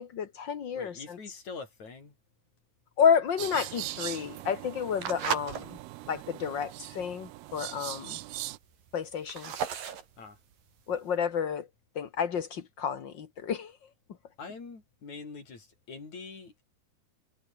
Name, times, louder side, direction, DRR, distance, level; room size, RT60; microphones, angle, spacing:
voice 1, 0.0-1.2 3.0-5.8 6.1-8.2 8.9-9.5 10.9-11.7 11.9-13.8, left 7 dB, 80° left, 1.0 m, -30 dB
voice 2, 0.7-2.1 10.2-10.4 14.4-16.7, left 4 dB, 45° left, 6.3 m, -44 dB
sound 1, 3.3-5.6 6.1-6.4 6.9-7.0 7.2-7.3 7.5-8.1 8.5-11.1, right 8 dB, 60° right, 4.2 m, -36 dB
sound 2, 3.4-8.6, right 18 dB, 80° right, 2.7 m, -41 dB
omnidirectional pair, 4.6 m